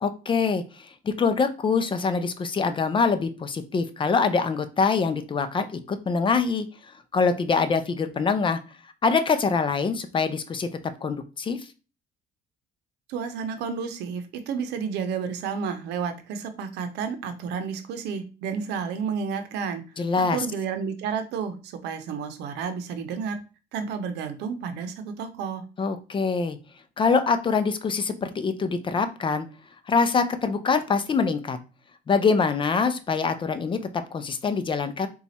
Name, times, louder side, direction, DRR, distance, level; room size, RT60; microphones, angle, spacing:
voice 1, 0.0-6.7 7.1-8.6 9.0-10.7 11.0-11.7 20.0-20.4 25.8-26.6 27.0-29.5 29.9-31.6 32.1-35.1, left 5 dB, 30° left, 10 dB, 0.5 m, -24 dB
voice 2, 13.1-19.8 20.1-23.4 23.7-25.6, right 6 dB, 85° right, 8 dB, 0.7 m, -31 dB
4.0 x 2.4 x 4.1 m, 0.33 s
cardioid pair, 110°, 17 cm